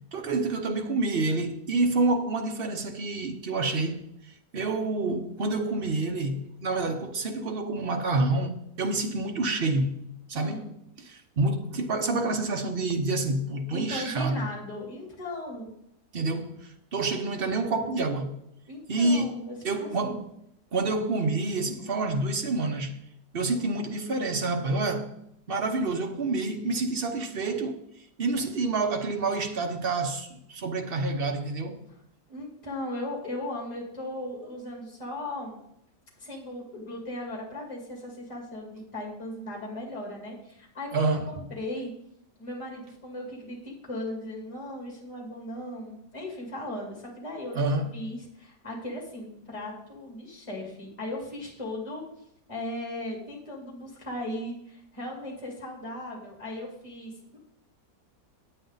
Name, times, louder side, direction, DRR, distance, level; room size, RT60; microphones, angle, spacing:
voice 1, 0.1-4.0 4.5-10.0 10.3-14.5 16.1-18.4 18.9-19.4 19.6-20.3 20.7-23.0 23.3-25.1 25.5-27.8 28.2-31.9 40.9-41.3 47.5-47.9, right 3 dB, 45° right, 0.9 m, -28 dB
voice 2, 10.3-10.7 13.7-15.7 18.7-20.1 31.9-32.0 32.3-35.6 36.2-41.9 42.4-52.0 52.5-57.4, left 1 dB, 20° left, 2.4 m, -37 dB
9.1 x 8.4 x 4.0 m
omnidirectional pair, 1.8 m